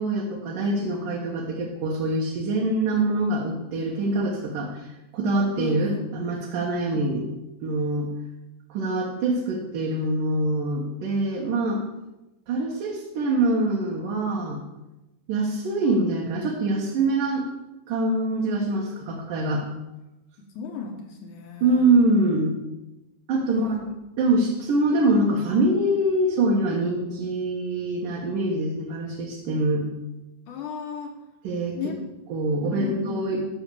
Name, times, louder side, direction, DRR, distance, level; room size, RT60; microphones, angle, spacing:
voice 1, 0.0-4.9 5.1-7.3 7.6-8.1 8.7-11.8 12.5-14.6 15.3-17.5 17.9-19.6 21.6-22.6 23.3-23.9 24.2-29.9 31.4-31.9 32.3-33.4, right 2 dB, 60° right, -3 dB, 2.4 m, -24 dB
voice 2, 5.6-6.0 6.9-7.0 18.8-19.2 20.6-21.9 23.5-24.0 30.5-31.1 31.7-32.1 32.8-33.4, left 5 dB, 75° left, 3 dB, 1.8 m, -35 dB
12.5 x 6.1 x 7.0 m, 1.0 s
omnidirectional pair, 5.0 m